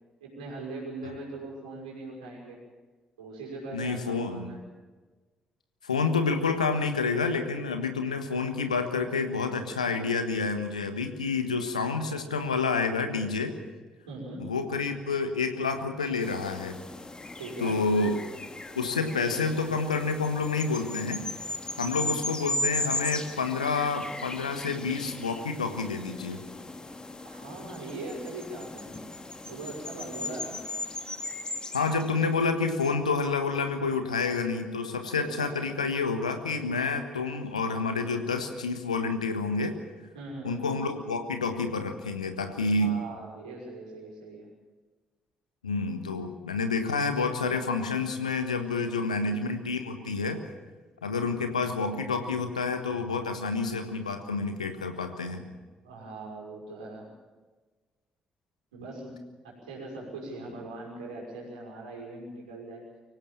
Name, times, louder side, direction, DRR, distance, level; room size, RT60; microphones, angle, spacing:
voice 1, 0.2-2.6 3.2-4.6 14.1-14.5 17.4-17.8 22.0-22.1 27.2-29.1 29.5-30.6 35.2-35.8 40.1-40.7 42.6-44.5 48.8-49.7 55.8-57.1 58.7-62.9, right 2 dB, 80° right, -3 dB, 5.8 m, -41 dB
voice 2, 3.7-4.5 5.8-13.6 14.4-16.8 17.6-18.2 18.8-21.3 21.8-26.4 31.7-39.8 40.4-43.0 45.6-50.4 51.0-55.4, left 4 dB, 85° left, 7 dB, 1.4 m, -29 dB
sound 1, 16.2-32.4, left 2 dB, 25° left, 2.0 m, -37 dB
24.5 x 16.5 x 7.3 m, 1.3 s
figure-of-eight pair, 40°, 4 cm